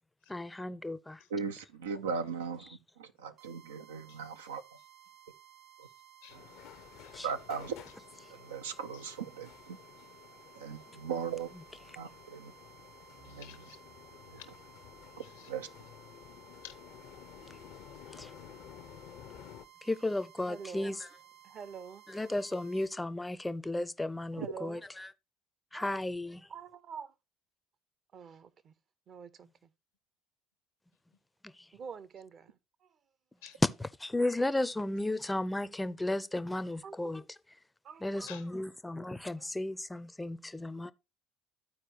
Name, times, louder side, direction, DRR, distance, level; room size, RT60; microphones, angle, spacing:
voice 1, 0.3-1.2 2.6-2.8 7.1-7.3 10.9-11.0 11.5-12.0 17.5-17.6 18.1-18.3 19.8-21.1 22.1-25.1 25.7-26.5 31.4-31.8 33.8-37.2 38.0-40.9, left 1 dB, 10° left, 0.5 m, -35 dB
voice 2, 1.3-4.6 5.8-5.9 7.2-7.7 8.4-9.8 10.6-11.5 12.0-12.5 13.2-13.4 15.2-15.7 24.4-24.5, right 6 dB, 90° right, 0.5 m, -38 dB
sound 1, 3.4-22.9, right 10 dB, 65° right, 2.8 m, -58 dB
voice 3, 6.2-7.3 8.9-9.1 10.7-10.9 13.2-13.8 14.4-14.5 15.1-15.5 16.6-16.8 33.4-33.6 38.3-38.4, left 11 dB, 90° left, 1.0 m, -53 dB
sound 2, 6.3-19.6, left 11 dB, 70° left, 0.6 m, -53 dB
voice 4, 20.4-21.0 21.4-22.0 24.3-24.8 25.7-26.0 26.5-27.1 28.1-28.7 29.1-29.7 31.7-33.0 36.8-37.0 37.8-38.4 39.4-39.5, right 6 dB, 50° right, 0.7 m, -47 dB
13.5 x 4.6 x 2.8 m
hypercardioid pair, 70°, 0 cm